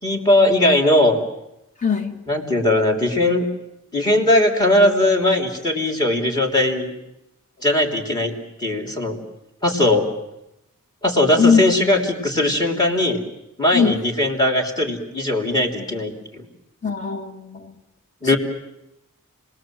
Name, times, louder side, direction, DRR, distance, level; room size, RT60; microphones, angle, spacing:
voice 1, 0.0-1.2 2.3-3.5 3.9-6.9 7.6-8.3 8.6-9.2 9.6-10.1 11.0-13.2 13.6-16.5 18.2-18.4, left 1 dB, 20° left, 2 dB, 3.2 m, -19 dB
voice 2, 1.8-2.2 11.4-11.6 13.7-14.0 16.8-17.7, left 6 dB, 35° left, 6 dB, 2.0 m, -20 dB
30.0 x 20.5 x 7.7 m, 0.89 s
head